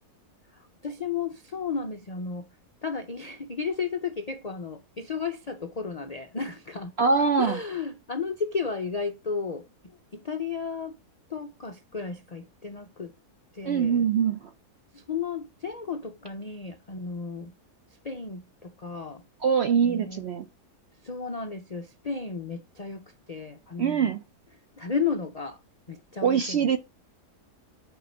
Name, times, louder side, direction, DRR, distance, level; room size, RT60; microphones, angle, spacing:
voice 1, 0.5-2.5 2.8-6.9 7.4-11.0 11.3-13.1 13.5-14.1 14.9-17.5 18.0-19.2 19.8-20.2 21.0-24.2 24.8-25.6 25.9-26.8, left 5 dB, 70° left, 0.3 m, -33 dB
voice 2, 7.0-7.6 13.6-14.5 19.4-20.4 23.8-24.2 26.2-26.8, right 6 dB, 65° right, 0.7 m, -23 dB
9.2 x 4.6 x 5.3 m
omnidirectional pair, 1.7 m